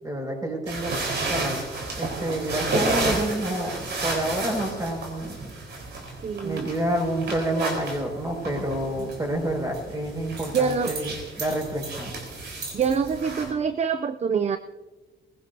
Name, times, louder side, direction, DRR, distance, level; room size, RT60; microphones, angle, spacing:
voice 1, 0.0-0.9 1.3-1.6 2.0-5.5 6.4-12.1, right 1 dB, 20° right, 1 dB, 6.0 m, -28 dB
sound 1, 0.7-13.5, right 2 dB, 60° right, 4.5 m, -32 dB
voice 2, 6.2-6.7 10.5-11.0 12.7-14.6, right 6 dB, 35° right, 11 dB, 0.5 m, -25 dB
22.0 x 16.5 x 2.8 m, 1.3 s
cardioid pair, 90°, 20 cm